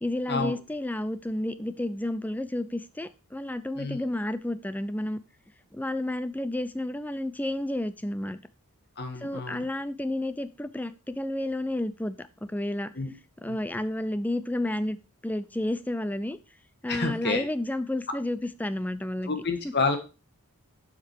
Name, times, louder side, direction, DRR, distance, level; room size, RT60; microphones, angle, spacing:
voice 1, 0.0-5.2 5.7-8.4 9.2-12.9 13.4-15.0 15.2-16.4 16.8-19.3 19.6-19.7, left 1 dB, 5° left, 0.4 m, -31 dB
voice 2, 9.0-9.7 12.9-13.1 13.5-13.6 16.9-17.5 19.3-20.0, left 3 dB, 50° left, 1.4 m, -29 dB
7.6 x 6.0 x 4.6 m
head